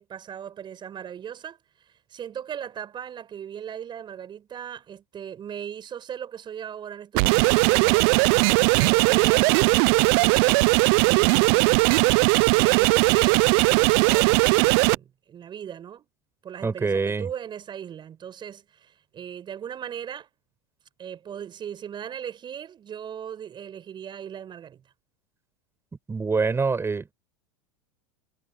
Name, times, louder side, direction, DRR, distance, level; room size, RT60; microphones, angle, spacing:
voice 1, 0.0-10.8 11.0-11.9 12.5-16.1 16.4-20.3 21.0-24.8, right 9 dB, 30° right, 5.9 m, -38 dB
sound 1, 7.1-15.0, right 30 dB, 55° right, 0.6 m, -19 dB
voice 2, 16.6-17.3 26.1-27.1, right 4 dB, 15° right, 7.7 m, -25 dB
hypercardioid pair, 95°, 15 cm